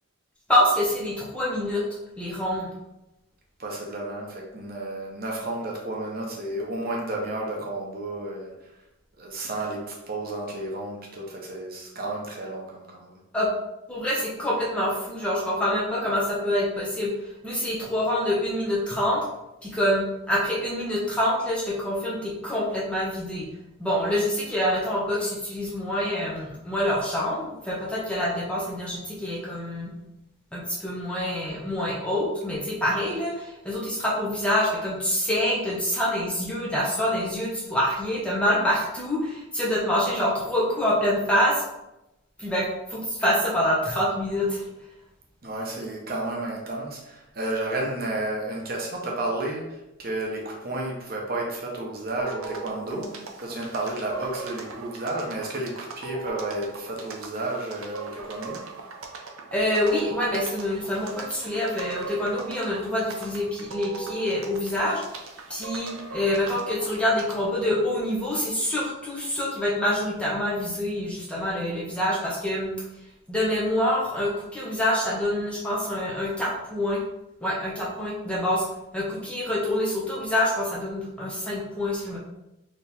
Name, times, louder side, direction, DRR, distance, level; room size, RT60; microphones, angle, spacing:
voice 1, 0.5-1.8 2.2-2.7 13.3-13.5 13.9-17.1 17.4-19.2 19.6-23.5 23.8-29.9 30.5-41.6 42.4-44.6 59.5-65.0 65.5-72.7 73.3-77.0 77.4-78.6 78.9-82.2, left 1 dB, 5° left, -5 dB, 0.8 m, -26 dB
voice 2, 3.6-8.7 9.2-13.2 45.4-58.6, right 2 dB, 45° right, -1 dB, 0.8 m, -32 dB
sound 1, 52.2-67.5, right 5 dB, 80° right, 0.7 m, -40 dB
4.4 x 3.0 x 3.5 m, 0.93 s
head